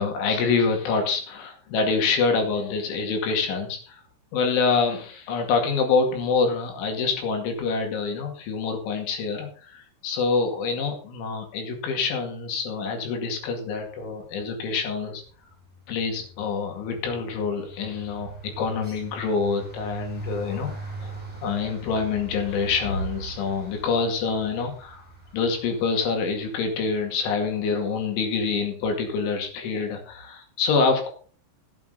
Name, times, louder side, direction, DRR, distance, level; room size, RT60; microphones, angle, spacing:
voice 1, 0.0-4.0 4.3-15.2 15.9-20.7 21.0-21.1 21.4-25.0 25.3-31.1, left 4 dB, 70° left, 4 dB, 4.6 m, -26 dB
sound 1, 14.2-14.5 14.8-27.9, right 1 dB, 5° right, 5.9 m, -41 dB
15.5 x 8.6 x 3.9 m, 0.40 s
omnidirectional pair, 5.7 m